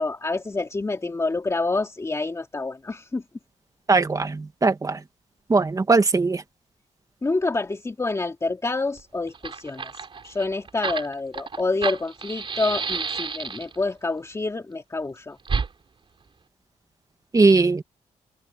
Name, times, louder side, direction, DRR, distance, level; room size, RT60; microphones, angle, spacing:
voice 1, 0.0-3.2 7.2-9.9 10.2-15.4, left 3 dB, 25° left, 2.5 m, -27 dB
voice 2, 3.9-5.0 5.5-6.4 17.3-17.8, right 3 dB, 25° right, 2.1 m, -19 dB
Fire, 9.0-9.1 9.3-13.8 15.4-15.7, right 5 dB, 45° right, 3.9 m, -30 dB
cardioid pair, 115°, 13 cm